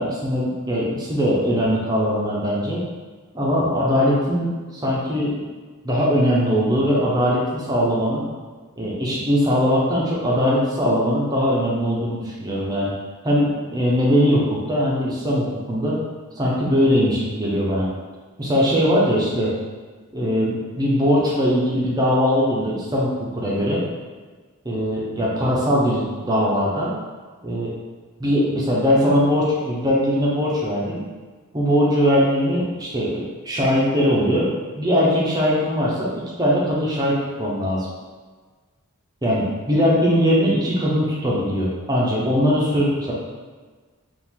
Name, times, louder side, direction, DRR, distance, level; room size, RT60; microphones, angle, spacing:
voice 1, 0.0-2.8 3.3-5.4 5.8-8.2 8.8-12.9 13.2-16.0 16.4-17.9 18.4-19.5 20.1-23.8 24.6-26.9 27.4-27.7 28.2-31.0 31.5-34.5 34.8-37.9 39.2-43.1, equal, 20° right, -6 dB, 0.8 m, -20 dB
4.5 x 2.6 x 3.7 m, 1.4 s
head